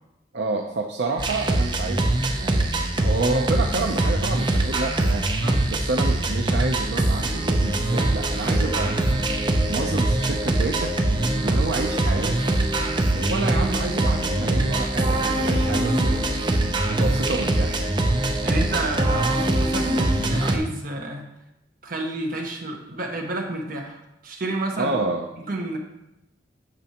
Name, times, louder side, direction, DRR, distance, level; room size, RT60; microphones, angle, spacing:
voice 1, 0.3-2.7 3.0-9.0 9.7-10.9 11.4-12.4 13.1-16.2 16.9-17.8 24.8-25.3, right 3 dB, 70° right, 2 dB, 0.6 m, -29 dB
sound 1, 1.2-20.6, right 2 dB, 25° right, 0.6 m, -23 dB
voice 2, 18.4-21.3 21.8-25.0 25.3-25.8, right 2 dB, 50° right, 1 dB, 1.2 m, -30 dB
8.8 x 6.1 x 2.9 m, 0.87 s
head